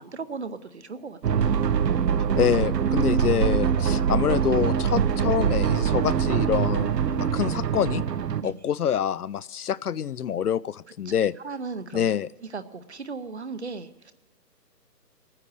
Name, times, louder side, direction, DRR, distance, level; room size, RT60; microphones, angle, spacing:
voice 1, 0.1-1.6 8.4-8.6 11.1-11.2 11.4-12.1 12.5-14.1, right 4 dB, 40° right, 12 dB, 0.8 m, -36 dB
sound 1, 1.2-8.4, right 7 dB, 75° right, 0.9 m, -23 dB
voice 2, 2.4-8.0 8.4-11.3 11.9-12.3, left 9 dB, 65° left, 19 dB, 0.5 m, -26 dB
19.0 x 9.8 x 6.5 m, 1.1 s
hypercardioid pair, 170°, 50 cm